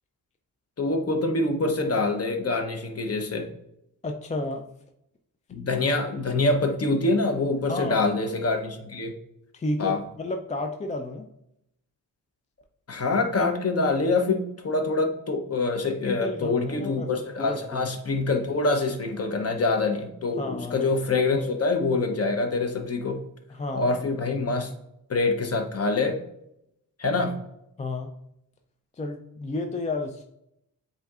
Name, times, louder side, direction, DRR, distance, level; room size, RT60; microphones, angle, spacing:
voice 1, 0.8-3.5 5.5-9.1 9.8-10.0 12.9-23.2 23.7-24.7 25.1-26.2 27.0-27.4, left 3 dB, 40° left, 5 dB, 0.8 m, -25 dB
voice 2, 4.0-4.7 7.7-8.0 9.5-11.3 16.0-17.1 17.4-17.9 20.4-21.0 23.5-24.0 27.8-28.1 28.9-30.2, left 2 dB, 20° left, 4 dB, 0.4 m, -32 dB
7.8 x 2.7 x 2.4 m, 0.79 s
wide cardioid pair, 95°, 36 cm